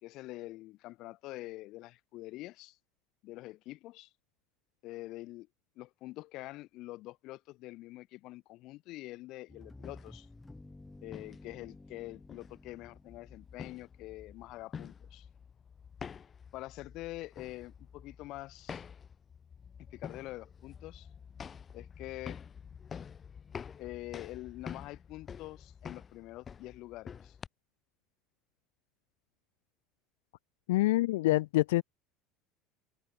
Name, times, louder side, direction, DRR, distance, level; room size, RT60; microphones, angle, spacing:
voice 1, 0.0-2.8 3.2-4.1 4.8-5.5 5.8-10.3 11.0-15.3 16.5-18.8 19.8-21.1 21.7-22.4 23.8-27.4, left 18 dB, 60° left, 2.8 m, -45 dB
sound 1, 9.5-14.3, left 2 dB, 10° left, 3.3 m, -54 dB
sound 2, 9.7-27.5, left 7 dB, 35° left, 1.7 m, -48 dB
voice 2, 30.7-31.8, left 18 dB, 80° left, 0.4 m, -26 dB
hypercardioid pair, 85°, 0 cm